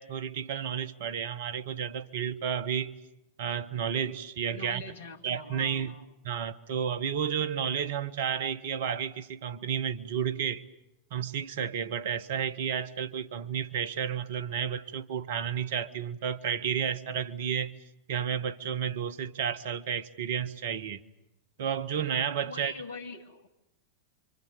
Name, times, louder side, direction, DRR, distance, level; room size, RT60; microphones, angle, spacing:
voice 1, 0.0-2.9 3.4-4.8 5.2-5.9 6.2-10.6 11.1-17.8 18.1-21.0 21.6-22.7, right 8 dB, 55° right, 1.4 m, -31 dB
voice 2, 4.5-6.1 22.4-23.5, left 3 dB, 60° left, 2.8 m, -44 dB
29.0 x 26.0 x 7.0 m
figure-of-eight pair, 90°, 0 cm